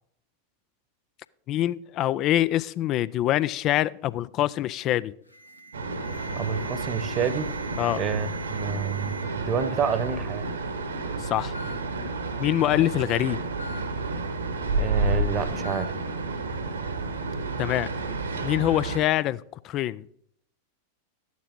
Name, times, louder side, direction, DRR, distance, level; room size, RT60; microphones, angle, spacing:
voice 1, 1.5-5.1 7.8-8.0 11.2-11.5 12.4-13.4 17.6-17.9 18.4-20.1, left 14 dB, 35° left, 19 dB, 0.3 m, -25 dB
Alarm, 5.3-9.2 9.6-10.0 10.8-10.9 11.5-11.8 13.6-13.8 15.6-15.9, right 1 dB, 90° left, 1.2 m, -42 dB
sound 1, 5.7-19.0, right 3 dB, 70° right, 1.4 m, -31 dB
voice 2, 6.4-7.5 8.0-10.5 14.8-15.9, right 6 dB, 30° right, 14 dB, 1.0 m, -28 dB
12.0 x 9.4 x 3.7 m, 0.66 s
figure-of-eight pair, 90°, 0 cm